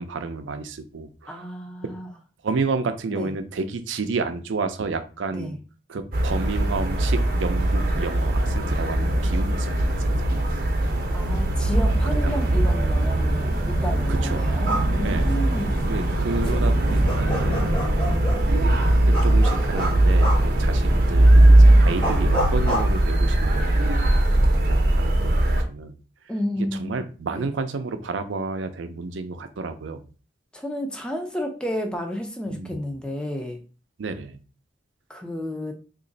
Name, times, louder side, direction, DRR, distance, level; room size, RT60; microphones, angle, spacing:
voice 1, 0.0-1.4 2.4-5.6 5.9-10.5 10.9-11.0 12.2-12.3 14.1-14.5 15.0-15.3 15.9-18.3 19.2-23.8 24.7-26.0 26.8-30.0 32.5-32.8 34.0-34.4, right 4 dB, 90° right, 9 dB, 0.5 m, -31 dB
voice 2, 1.3-2.1 3.1-3.3 5.3-5.6 11.1-15.8 16.5-16.8 26.3-27.5 30.5-33.6 35.1-35.7, equal, 5° left, 2 dB, 0.5 m, -31 dB
sound 1, 6.1-25.6, right 1 dB, 50° right, 0.6 m, -20 dB
sound 2, 14.5-23.7, equal, 25° left, 1.0 m, -31 dB
3.0 x 2.5 x 3.8 m, 0.36 s
head